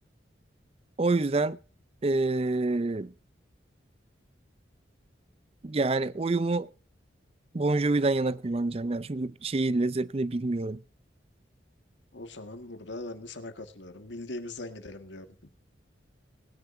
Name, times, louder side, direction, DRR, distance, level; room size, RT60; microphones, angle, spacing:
voice 1, 1.0-1.6 2.0-3.1 5.6-6.7 7.5-10.8, right 2 dB, 30° right, 0.5 m, -27 dB
voice 2, 12.1-15.3, left 2 dB, 75° left, 1.7 m, -40 dB
20.0 x 10.0 x 2.7 m
head